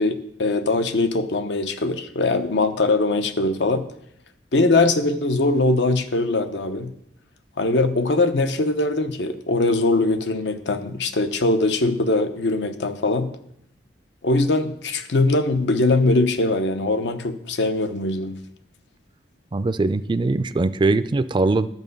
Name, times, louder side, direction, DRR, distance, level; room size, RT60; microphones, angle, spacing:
voice 1, 0.0-3.8 4.5-6.9 7.6-13.3 14.2-18.4, left 2 dB, 75° left, 9 dB, 0.8 m, -21 dB
voice 2, 19.5-21.7, right 3 dB, 25° right, 12 dB, 0.3 m, -21 dB
11.0 x 6.9 x 5.3 m, 0.73 s
head